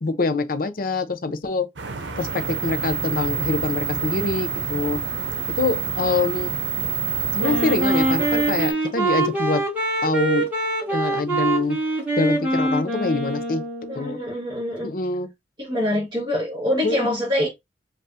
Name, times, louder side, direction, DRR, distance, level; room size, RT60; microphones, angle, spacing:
voice 1, 0.0-1.7 2.2-5.0 5.6-6.5 7.3-9.6 10.0-10.5 10.9-11.8 12.2-13.6 13.9-14.2 14.8-15.3 16.8-17.1, left 3 dB, 50° left, 0.6 m, -24 dB
sound 1, 1.8-8.7, right 3 dB, 85° right, 0.7 m, -33 dB
sound 2, 2.2-8.7, right 6 dB, 55° right, 1.8 m, -28 dB
Wind instrument woodwind instrument, 7.4-14.1, right 2 dB, 10° right, 1.8 m, -24 dB
voice 2, 13.9-14.9 15.6-17.5, left 1 dB, 25° right, 1.7 m, -25 dB
5.4 x 2.5 x 2.7 m
head